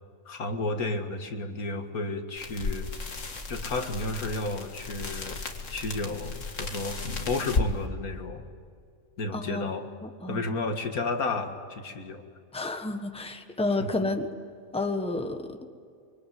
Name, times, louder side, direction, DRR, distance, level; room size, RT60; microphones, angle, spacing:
voice 1, 0.3-2.9 3.5-5.4 5.7-7.0 7.3-8.5 9.2-9.9 10.3-12.2 13.8-13.9, left 2 dB, 85° left, 6 dB, 2.3 m, -32 dB
sound 1, 2.4-7.7, left 3 dB, 60° left, 2.2 m, -34 dB
voice 2, 9.3-9.7 10.0-10.4 12.5-14.3 14.7-15.7, left 2 dB, 5° left, 6 dB, 1.3 m, -30 dB
25.0 x 24.0 x 9.5 m, 2.2 s
omnidirectional pair, 1.5 m